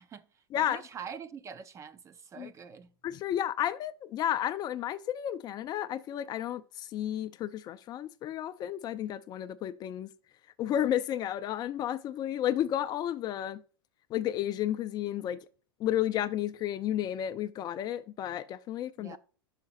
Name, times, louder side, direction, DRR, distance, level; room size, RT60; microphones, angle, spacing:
voice 1, 0.0-2.9 19.0-19.2, right 6 dB, 25° right, 0.5 m, -45 dB
voice 2, 3.0-10.1 10.6-13.6 14.1-15.4 15.8-19.2, left 11 dB, 30° left, 0.4 m, -32 dB
6.4 x 5.8 x 4.0 m
hypercardioid pair, 110°, 13 cm